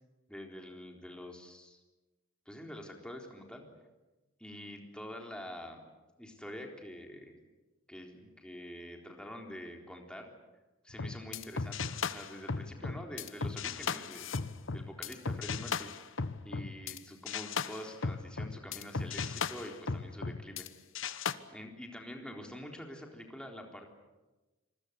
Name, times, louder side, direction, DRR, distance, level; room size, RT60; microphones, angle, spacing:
voice 1, 0.3-1.8 2.5-3.6 4.4-5.9 6.2-7.3 7.9-10.3 10.8-14.4 14.7-15.9 16.4-20.7 21.5-23.9, equal, 5° left, 2 dB, 3.8 m, -46 dB
sound 1, 10.9-17.0 17.3-20.7 21.0-21.3, left 5 dB, 65° left, 1.1 m, -36 dB
27.0 x 21.5 x 8.2 m, 1.1 s
head